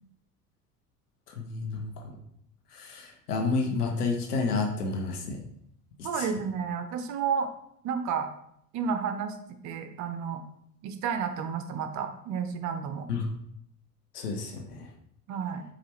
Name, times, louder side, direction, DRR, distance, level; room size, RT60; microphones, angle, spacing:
voice 1, 1.4-1.9 2.7-5.4 13.1-13.2 14.1-14.9, left 4 dB, 80° left, 2 dB, 0.8 m, -30 dB
voice 2, 6.0-7.5 7.8-8.3 8.7-9.4 9.6-10.4 10.8-13.1 15.3-15.6, right 6 dB, 40° right, 7 dB, 0.6 m, -31 dB
4.7 x 2.4 x 3.1 m, 0.71 s
figure-of-eight pair, 70°, 45 cm